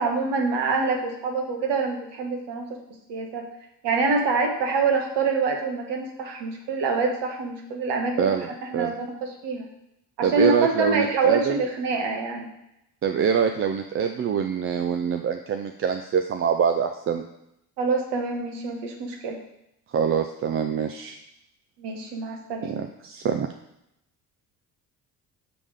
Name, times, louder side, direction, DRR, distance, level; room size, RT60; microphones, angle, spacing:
voice 1, 0.0-2.8 3.1-3.4 3.8-8.3 8.7-9.7 10.2-12.5 17.8-19.4 21.8-22.7, right 4 dB, 60° right, 1 dB, 1.4 m, -26 dB
voice 2, 8.2-8.9 10.2-11.6 13.0-17.2 19.9-21.1 22.6-23.5, right 7 dB, 30° right, 5 dB, 0.4 m, -25 dB
6.8 x 3.5 x 5.0 m, 0.82 s
hypercardioid pair, 50°, 46 cm